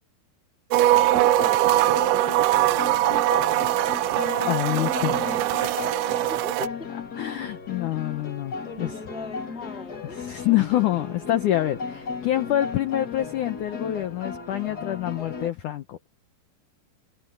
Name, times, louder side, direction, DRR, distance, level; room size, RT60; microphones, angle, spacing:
sound 1, 0.7-6.7, right 15 dB, 90° right, 3.2 m, -22 dB
sound 2, 0.9-15.5, left 4 dB, 45° left, 1.3 m, -35 dB
voice 1, 1.4-3.0 4.7-5.6 6.3-6.9 8.6-10.2, left 2 dB, 5° right, 1.2 m, -39 dB
voice 2, 4.5-5.7 7.2-8.9 10.1-16.1, left 13 dB, 85° left, 1.7 m, -26 dB
omnidirectional pair, 5.1 m